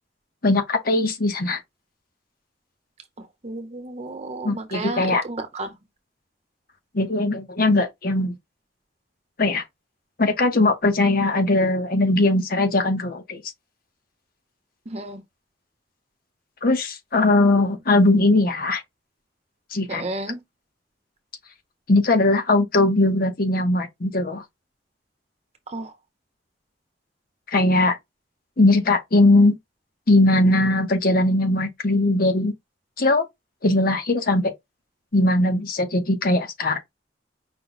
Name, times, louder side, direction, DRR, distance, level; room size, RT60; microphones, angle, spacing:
voice 1, 0.4-1.6 4.4-5.2 6.9-8.4 9.4-9.6 10.2-13.4 16.6-18.8 19.7-20.1 21.9-24.4 27.5-28.0 28.6-29.6 30.1-32.5 33.0-33.2 33.6-34.5 35.1-36.8, left 2 dB, 55° left, 1.0 m, -20 dB
voice 2, 3.4-5.7 14.9-15.2 19.9-20.4 25.7-25.9, right 2 dB, 40° right, 1.0 m, -32 dB
5.4 x 2.2 x 4.0 m
head